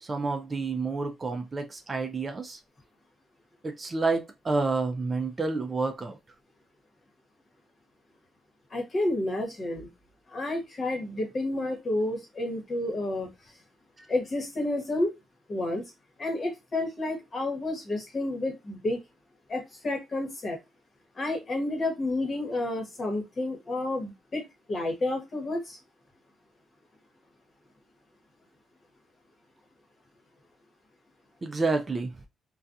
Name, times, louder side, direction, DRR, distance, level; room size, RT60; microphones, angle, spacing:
voice 1, 0.0-2.6 3.6-6.2 14.0-14.1 31.4-32.1, right 3 dB, 30° right, 0.4 m, -29 dB
voice 2, 8.7-9.9 10.3-13.3 14.1-15.1 15.5-15.9 16.2-19.0 19.5-20.6 21.2-24.4 24.7-25.8, left 2 dB, 40° left, 1.1 m, -30 dB
2.3 x 2.3 x 2.6 m
cardioid pair, 90°, 0 cm